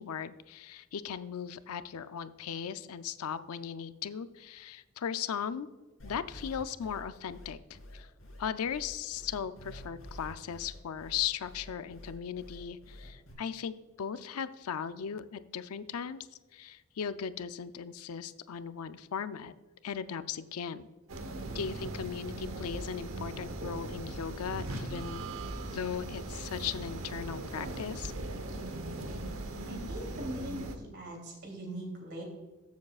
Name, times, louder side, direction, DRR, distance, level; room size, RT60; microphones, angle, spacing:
voice 1, 0.0-5.7 6.0-8.1 8.4-16.3 16.5-19.5 19.8-20.9 21.5-25.2 25.6-28.1, left 7 dB, 85° left, 13 dB, 0.5 m, -37 dB
sound 1, 6.0-13.3, left 1 dB, 65° left, 3.1 m, -48 dB
sound 2, 21.1-30.8, right 2 dB, 70° right, 1.0 m, -39 dB
voice 2, 29.7-32.2, equal, 50° right, 1 dB, 2.8 m, -41 dB
13.5 x 7.3 x 2.4 m, 1.2 s
head